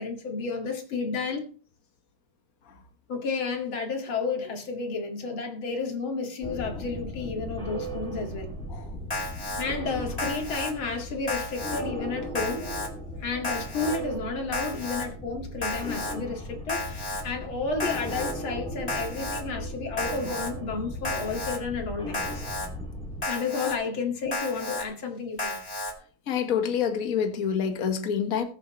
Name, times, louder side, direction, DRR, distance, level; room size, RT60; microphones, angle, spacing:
voice 1, 0.0-1.5 3.1-8.5 9.6-12.7 13.2-22.5 23.3-25.6, left 4 dB, 90° left, 3 dB, 3.0 m, -32 dB
sound 1, 6.4-23.2, equal, 5° left, 2.1 m, -37 dB
Alarm, 9.1-9.6 10.2-10.7 11.3-11.8 12.3-12.9 13.4-14.0 14.5-15.1 15.6-16.1 16.7-17.2 17.8-18.3 18.9-19.4 20.0-20.5 21.0-21.6 22.1-22.7 23.2-23.7 24.3-24.8 25.4-25.9, left 1 dB, 20° left, 2.1 m, -32 dB
voice 2, 26.3-28.4, left 7 dB, 45° left, 6 dB, 1.7 m, -27 dB
21.0 x 7.2 x 3.1 m, 0.39 s
omnidirectional pair, 2.2 m